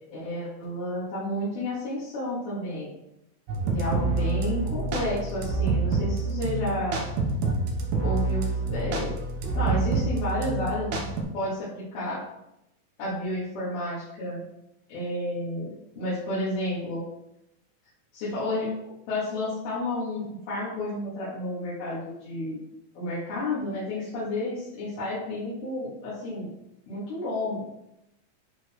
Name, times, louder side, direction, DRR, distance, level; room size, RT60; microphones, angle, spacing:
voice 1, 0.1-2.9 3.6-7.0 8.0-9.1 9.5-11.1 11.3-12.2 13.0-14.4 14.9-17.0 18.1-18.7 19.1-22.6 23.0-26.5 26.9-27.6, left 1 dB, 85° left, -10 dB, 4.1 m, -31 dB
sound 1, 3.5-11.2, right 3 dB, 80° right, 3.0 m, -27 dB
10.5 x 4.1 x 4.5 m, 0.85 s
omnidirectional pair, 4.3 m